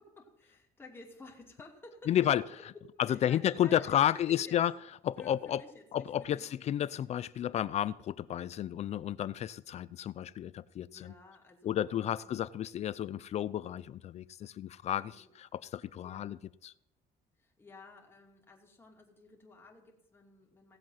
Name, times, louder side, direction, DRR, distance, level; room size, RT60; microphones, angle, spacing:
voice 1, 0.0-2.1 2.8-4.6 5.2-6.5 10.9-12.3 15.0-15.3 16.0-16.5 17.4-20.8, left 2 dB, 15° left, 2.6 m, -54 dB
voice 2, 2.1-2.4 3.0-4.7 5.0-5.6 5.9-11.1 11.6-16.7, left 11 dB, 45° left, 0.5 m, -32 dB
17.0 x 7.8 x 5.7 m
cardioid pair, 150°, 16 cm